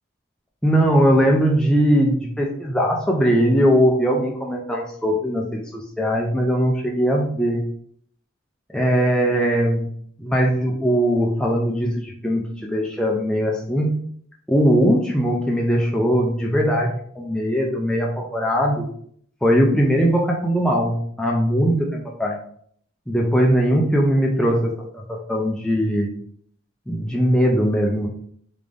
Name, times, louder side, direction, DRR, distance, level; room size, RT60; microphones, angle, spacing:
voice 1, 0.6-7.6 8.7-9.9 10.2-13.9 14.5-18.9 19.4-22.4 23.1-26.1 26.9-28.1, equal, 5° left, -1 dB, 0.3 m, -20 dB
3.3 x 2.5 x 3.5 m, 0.63 s
head